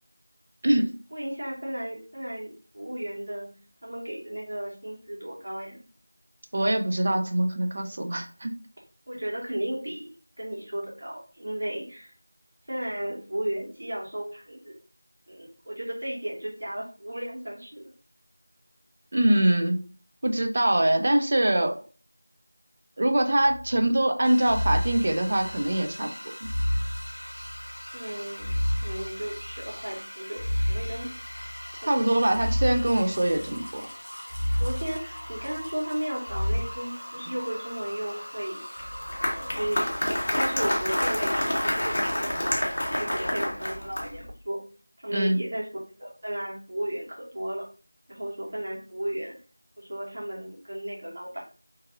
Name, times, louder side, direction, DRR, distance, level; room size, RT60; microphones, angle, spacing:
voice 1, 1.1-3.5 3.8-5.8 9.1-10.1 10.4-12.1 12.7-14.7 15.3-17.9 27.9-28.5 28.8-31.1 32.0-32.3 34.6-38.9 39.2-39.9 40.3-42.3 42.9-44.6 45.0-45.6 46.0-47.6 48.1-49.3 49.8-51.4, right 1 dB, 55° right, -4 dB, 1.3 m, -34 dB
voice 2, 6.5-8.5 19.1-19.8 20.2-21.8 23.0-26.1 26.4-26.5 31.8-33.9 45.1-45.4, right 1 dB, 35° right, 5 dB, 0.3 m, -23 dB
sound 1, 23.4-23.8 24.5-25.7 26.4-27.7 28.4-29.7 30.4-31.7 32.3-33.6 34.3-35.6 36.3-36.6, equal, 90° right, 0.9 m, -30 dB
sound 2, 24.2-42.3, equal, 85° left, 0.7 m, -41 dB
Applause, 38.8-44.3, left 1 dB, 35° left, 0.6 m, -28 dB
2.6 x 2.5 x 2.5 m, 0.40 s
figure-of-eight pair, 175°, 0 cm